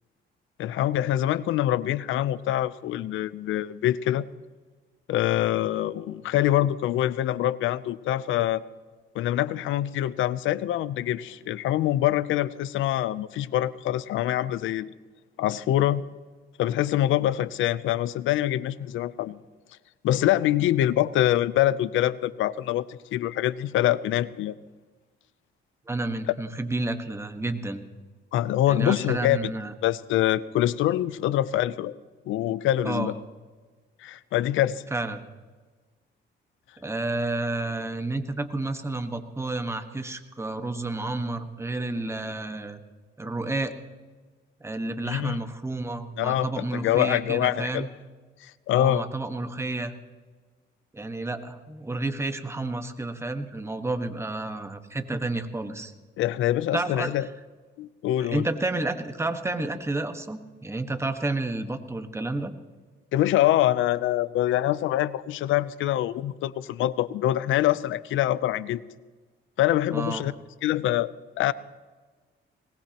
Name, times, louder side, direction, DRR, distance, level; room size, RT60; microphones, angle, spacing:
voice 1, 0.6-4.3 5.1-8.6 9.1-14.9 15.4-16.0 16.6-19.4 20.0-24.6 28.3-29.5 29.8-31.9 32.3-33.1 34.0-34.8 45.0-45.4 46.2-47.9 48.4-49.0 56.2-57.3 57.8-58.5 63.1-68.8 69.6-70.3 70.6-71.1 71.4-71.5, left 13 dB, 85° left, 17 dB, 0.6 m, -25 dB
voice 2, 25.9-27.8 28.7-29.7 32.8-33.1 34.9-35.2 36.8-42.8 43.2-43.8 44.6-47.9 48.7-49.9 50.9-55.9 56.7-57.1 58.2-62.5 69.9-70.2, right 2 dB, 15° right, 7 dB, 1.4 m, -30 dB
21.5 x 19.0 x 3.0 m, 1.4 s
cardioid pair, 90°, 20 cm